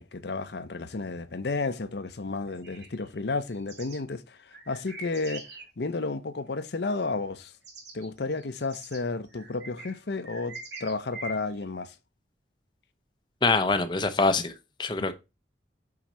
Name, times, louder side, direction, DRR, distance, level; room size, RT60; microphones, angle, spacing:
voice 1, 0.0-5.5 5.8-7.5 7.9-11.9, left 3 dB, 65° left, 0.6 m, -32 dB
sound 1, 2.5-4.0 4.5-5.7 7.4-7.5 7.6-11.6, right 3 dB, 75° right, 2.7 m, -44 dB
voice 2, 13.4-14.5 14.8-15.1, left 3 dB, 25° left, 0.6 m, -24 dB
6.1 x 4.9 x 4.2 m
head